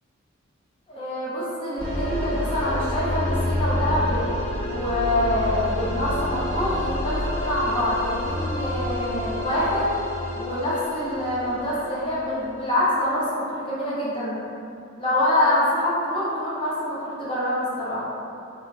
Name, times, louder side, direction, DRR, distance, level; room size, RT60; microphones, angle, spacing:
voice 1, 0.9-4.2 4.7-9.9 10.3-14.4 15.0-18.1, left 1 dB, 25° left, -9 dB, 0.6 m, -25 dB
sound 1, 1.8-12.4, left 1 dB, 75° right, 1.5 m, -29 dB
3.1 x 2.1 x 2.4 m, 2.5 s
head